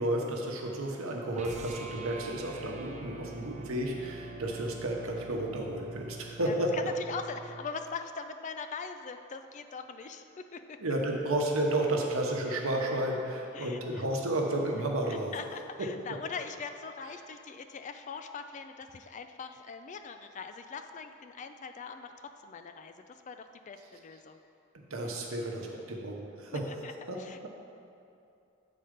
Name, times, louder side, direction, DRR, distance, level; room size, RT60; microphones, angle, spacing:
voice 1, 0.0-6.7 10.8-15.3 24.9-26.8 27.1-27.2, right 1 dB, 85° right, 0 dB, 0.9 m, -32 dB
sound 1, 1.3-7.7, right 3 dB, 35° right, 0.4 m, -45 dB
voice 2, 6.4-10.8 13.5-14.0 15.1-24.4 26.5-26.9 27.2-27.5, left 5 dB, 35° left, 8 dB, 0.3 m, -42 dB
7.7 x 4.2 x 5.1 m, 2.6 s
head